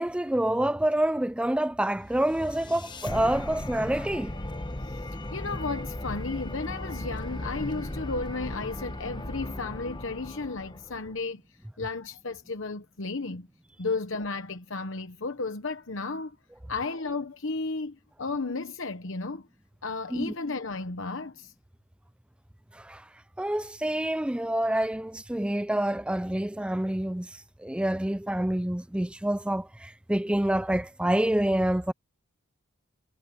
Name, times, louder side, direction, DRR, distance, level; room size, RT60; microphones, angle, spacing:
voice 1, 0.0-4.3 20.1-20.3 22.7-23.0 23.4-31.9, right 1 dB, 5° right, 0.3 m, -27 dB
sound 1, 2.0-11.2, left 1 dB, 20° left, 1.1 m, -37 dB
voice 2, 4.8-11.4 11.8-13.5 13.8-16.4 16.7-19.5 19.8-21.5, left 3 dB, 60° left, 1.0 m, -33 dB
head